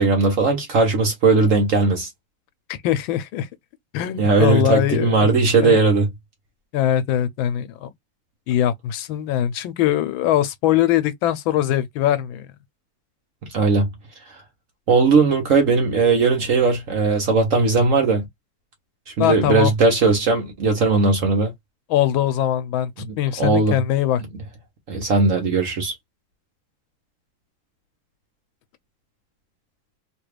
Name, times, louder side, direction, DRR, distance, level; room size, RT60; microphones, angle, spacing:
voice 1, 0.0-2.1 4.2-6.1 13.5-13.9 14.9-18.2 19.1-21.5 23.1-23.8 24.9-25.9, right 4 dB, 55° right, 1.0 m, -18 dB
voice 2, 2.7-3.5 3.9-5.3 5.6-5.8 6.7-7.9 8.5-12.5 19.2-19.7 21.9-22.9 23.2-24.2, left 11 dB, 90° left, 1.4 m, -21 dB
3.3 x 2.4 x 3.2 m
omnidirectional pair, 2.1 m